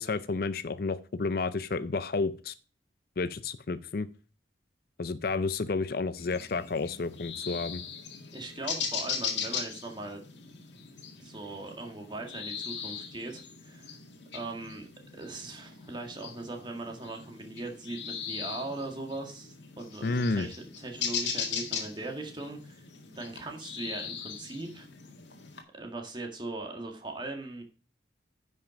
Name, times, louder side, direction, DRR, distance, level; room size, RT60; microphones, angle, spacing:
voice 1, 0.0-2.5 3.2-4.1 5.0-7.8 20.0-20.5, left 3 dB, 55° left, 14 dB, 0.5 m, -31 dB
sound 1, 6.2-25.6, left 6 dB, 75° left, 1.9 m, -39 dB
voice 2, 8.3-10.2 11.2-13.9 14.3-14.9 15.1-22.8 23.1-24.9 25.7-27.6, right 2 dB, 25° right, 2 dB, 1.9 m, -39 dB
10.0 x 5.8 x 5.1 m, 0.38 s
head